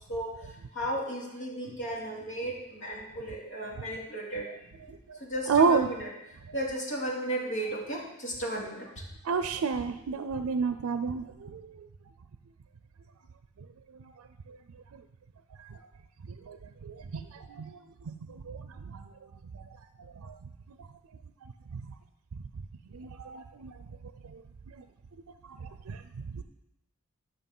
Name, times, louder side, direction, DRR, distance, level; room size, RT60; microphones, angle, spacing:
voice 1, 0.1-4.7 5.2-6.1 6.5-9.0, right 1 dB, 65° left, -3 dB, 2.6 m, -35 dB
voice 2, 5.5-5.9 9.2-11.6 16.5-16.6 16.8-17.2 17.5-17.7 18.5-18.6 18.9-19.0 20.3-20.4 22.9-23.7 25.9-26.0 26.3-26.4, right 5 dB, 85° right, 10 dB, 0.4 m, -29 dB
11.5 x 5.7 x 5.5 m, 0.88 s
head